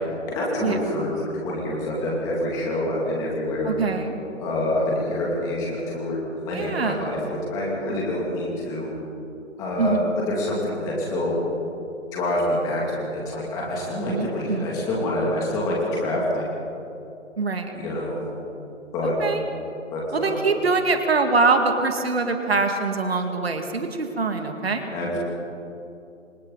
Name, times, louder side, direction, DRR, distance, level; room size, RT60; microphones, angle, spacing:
voice 1, 0.2-3.7 4.4-6.2 6.4-8.9 9.6-10.0 10.3-11.3 12.1-16.5 17.7-18.2 18.9-19.1 19.9-20.4 24.9-25.2, left 1 dB, 10° left, -4 dB, 2.5 m, -26 dB
voice 2, 3.6-4.1 6.5-7.1 9.8-10.1 14.1-14.8 17.4-17.7 19.0-19.4 20.1-24.9, right 4 dB, 50° right, 5 dB, 2.3 m, -24 dB
29.0 x 26.0 x 4.0 m, 2.8 s
figure-of-eight pair, 160°, 39 cm